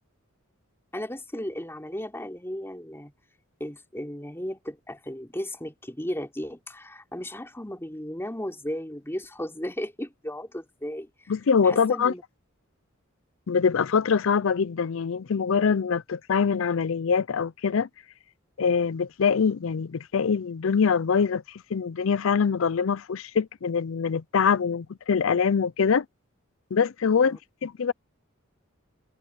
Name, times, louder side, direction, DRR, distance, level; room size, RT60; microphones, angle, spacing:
voice 1, 0.9-3.1 3.6-11.3 11.6-12.2 27.2-27.4, equal, 10° left, 3.4 m, -35 dB
voice 2, 11.3-12.1 13.5-17.9 18.6-21.4 21.7-26.1 26.7-27.9, left 6 dB, 65° left, 0.5 m, -24 dB
head